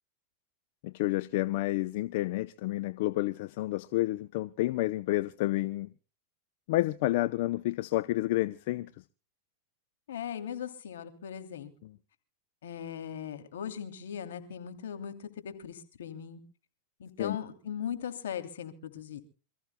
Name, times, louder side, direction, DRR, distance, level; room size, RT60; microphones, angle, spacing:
voice 1, 0.8-5.9 6.7-8.9 17.2-17.4, left 17 dB, 60° left, 0.6 m, -30 dB
voice 2, 10.1-11.7 12.6-16.4 17.0-19.2, left 8 dB, 85° left, 2.9 m, -39 dB
27.5 x 15.0 x 2.2 m
hypercardioid pair, 120°, 0 cm